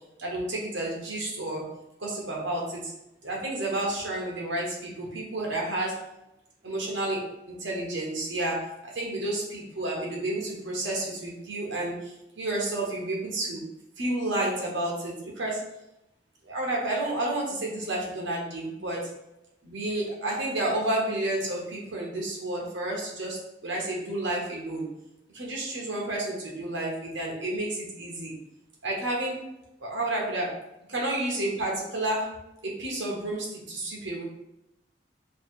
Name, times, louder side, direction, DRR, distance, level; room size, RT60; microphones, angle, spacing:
voice 1, 0.2-1.7 2.0-2.9 3.2-6.0 6.6-13.6 14.0-15.6 16.4-19.1 19.6-24.9 25.3-28.3 28.8-29.4 29.8-30.6 30.9-32.3 32.6-34.3, right 1 dB, 85° right, -3 dB, 1.2 m, -31 dB
3.3 x 2.8 x 4.5 m, 0.89 s
head